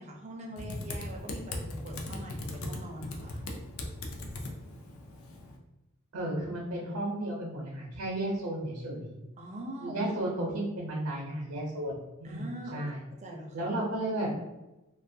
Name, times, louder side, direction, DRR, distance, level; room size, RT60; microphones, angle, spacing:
voice 1, 0.0-3.4 9.4-10.0 12.2-12.8 13.2-13.7, right 1 dB, 30° right, 0 dB, 0.4 m, -43 dB
Typing, 0.6-5.6, left 2 dB, 70° left, 0.4 m, -39 dB
voice 2, 6.1-9.2 9.8-13.0 13.5-14.3, right 1 dB, 75° right, -2 dB, 0.6 m, -33 dB
2.4 x 2.3 x 2.6 m, 1.0 s
head